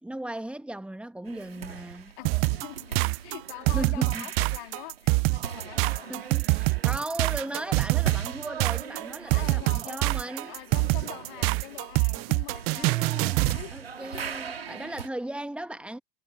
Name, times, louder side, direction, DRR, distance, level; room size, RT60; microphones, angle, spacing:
voice 1, 0.0-2.1 3.7-4.3 6.1-10.6 12.8-16.0, right 1 dB, 5° right, 1.6 m, -37 dB
sound 1, 1.3-15.1, right 7 dB, 90° right, 2.4 m, -41 dB
voice 2, 2.2-6.2 9.3-13.8 14.1-14.3, left 29 dB, 60° left, 3.2 m, -44 dB
sound 2, 2.3-13.6, right 29 dB, 45° right, 0.8 m, -25 dB
hypercardioid pair, 90°, 29 cm